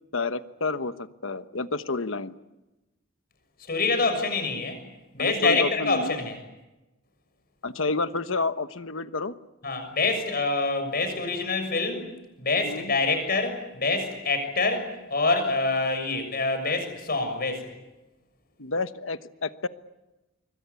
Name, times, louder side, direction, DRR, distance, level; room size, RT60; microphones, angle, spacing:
voice 1, 0.1-2.3 5.2-6.2 7.6-9.3 12.6-12.9 18.6-19.7, left 3 dB, 70° left, 11 dB, 1.2 m, -30 dB
voice 2, 3.7-4.8 5.1-6.4 9.6-12.0 12.4-17.7, left 3 dB, 50° left, 7 dB, 6.7 m, -26 dB
25.5 x 24.5 x 8.4 m, 1.0 s
head